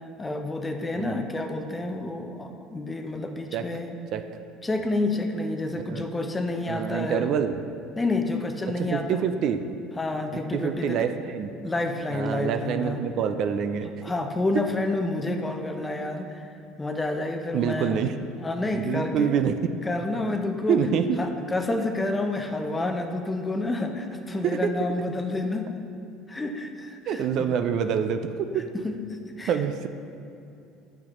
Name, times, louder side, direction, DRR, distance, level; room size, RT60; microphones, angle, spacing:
voice 1, 0.2-4.0 4.6-7.3 8.0-9.3 10.0-11.1 11.6-13.0 14.0-18.1 18.4-19.4 19.8-20.8 21.2-25.7 26.3-27.5 28.7-29.6, left 2 dB, 15° left, 5 dB, 0.6 m, -29 dB
voice 2, 6.7-7.5 8.8-9.6 10.3-11.5 12.1-13.9 17.5-18.1 18.7-19.6 20.7-21.1 27.1-28.6 29.5-29.9, right 8 dB, 55° right, 8 dB, 0.3 m, -26 dB
8.6 x 5.8 x 3.0 m, 2.7 s
supercardioid pair, 110°, 0 cm